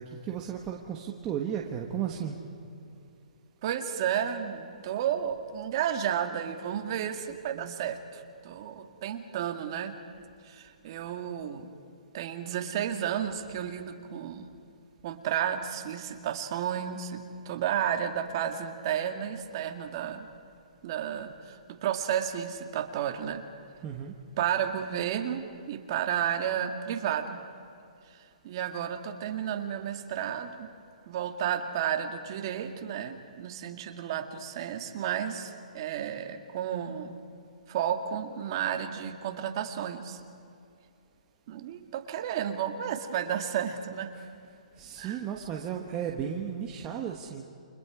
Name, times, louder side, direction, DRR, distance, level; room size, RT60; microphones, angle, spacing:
voice 1, 0.0-2.4 23.8-24.1 44.1-44.3 44.8-47.4, right 8 dB, 15° right, 1 dB, 1.2 m, -34 dB
voice 2, 3.6-10.0 10.4-11.7 12.1-14.6 15.0-20.3 20.8-23.4 24.4-27.4 28.4-30.7 31.1-37.2 37.7-40.2 41.5-44.2 45.0-45.2, right 9 dB, 35° right, 5 dB, 1.9 m, -32 dB
29.5 x 26.0 x 5.0 m, 2.5 s
hypercardioid pair, 165°, 4 cm